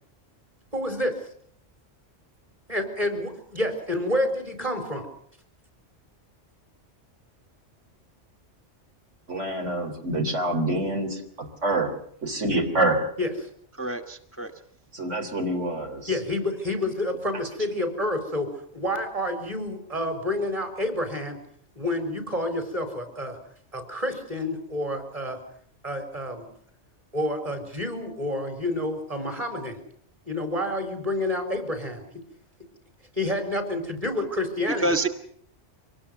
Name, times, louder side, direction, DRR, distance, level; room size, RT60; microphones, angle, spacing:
voice 1, 0.7-1.1 2.7-5.1 13.2-13.3 16.1-21.4 21.8-23.4 23.7-25.4 25.8-26.5 27.1-29.8 30.3-32.0 33.2-35.0, left 1 dB, 30° right, 6 dB, 4.5 m, -29 dB
voice 2, 9.3-11.9 12.2-13.1 14.9-16.1, right 1 dB, 75° right, 4 dB, 3.7 m, -26 dB
voice 3, 13.8-14.5 34.8-35.1, right 2 dB, 10° left, 7 dB, 1.1 m, -26 dB
25.0 x 19.0 x 6.8 m, 0.64 s
omnidirectional pair, 1.3 m